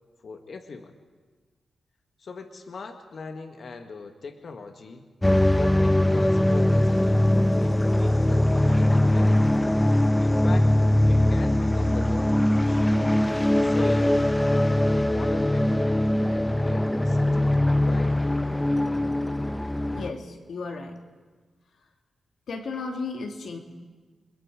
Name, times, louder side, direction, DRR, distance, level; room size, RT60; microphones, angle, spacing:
voice 1, 0.2-1.0 2.2-5.1 5.6-9.6 10.2-10.7 11.1-13.2 13.6-17.5 17.9-18.2, left 4 dB, 60° left, 6 dB, 1.7 m, -40 dB
sound 1, 5.2-20.1, left 1 dB, 10° left, 0.8 m, -21 dB
voice 2, 19.9-21.0 21.8-21.9 22.5-23.6, left 4 dB, 75° left, 4 dB, 2.5 m, -34 dB
29.5 x 21.5 x 5.0 m, 1.4 s
cardioid pair, 75°, 0 cm